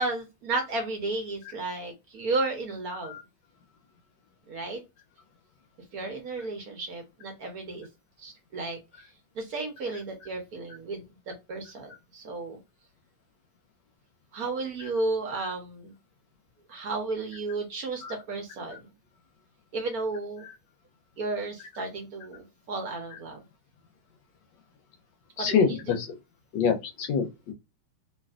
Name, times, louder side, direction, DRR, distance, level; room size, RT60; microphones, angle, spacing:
voice 1, 0.0-3.1 4.5-4.8 5.9-7.9 8.2-8.8 9.3-12.6 14.3-15.9 16.7-18.9 19.7-20.4 21.2-23.4 25.4-26.0, right 3 dB, 60° right, 1.1 m, -33 dB
voice 2, 25.4-26.1 26.5-27.5, left 6 dB, 75° left, 1.2 m, -27 dB
3.2 x 2.6 x 2.3 m
omnidirectional pair, 2.1 m